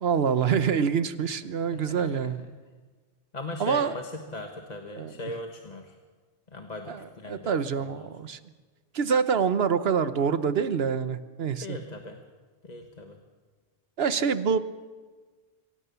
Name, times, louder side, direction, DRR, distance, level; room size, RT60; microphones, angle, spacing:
voice 1, 0.0-2.4 3.6-3.9 5.0-5.1 6.9-8.4 8.9-11.8 14.0-14.6, right 6 dB, 65° right, 13 dB, 1.1 m, -26 dB
voice 2, 1.6-2.3 3.3-6.0 6.5-8.1 11.6-12.2 12.6-13.2, left 2 dB, 40° left, 4 dB, 1.4 m, -39 dB
24.0 x 16.5 x 6.9 m, 1.4 s
omnidirectional pair, 1.2 m